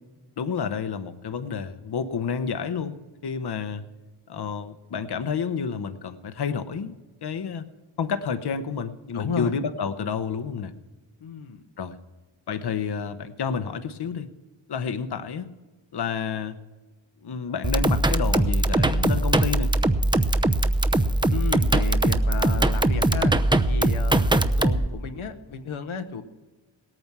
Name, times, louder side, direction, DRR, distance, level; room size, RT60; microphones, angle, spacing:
voice 1, 0.4-3.0 3.2-3.8 4.3-7.7 8.0-10.7 11.8-12.0 12.5-14.3 14.7-15.5 15.9-16.6 17.2-19.7, left 6 dB, 55° left, 11 dB, 0.9 m, -30 dB
voice 2, 9.1-9.5 11.2-11.6 21.3-23.3 23.7-26.2, left 5 dB, 80° left, 8 dB, 1.0 m, -33 dB
sound 1, 17.6-24.9, right 1 dB, 10° right, 0.7 m, -21 dB
18.0 x 9.0 x 6.0 m, 1.2 s
cardioid pair, 50°, 48 cm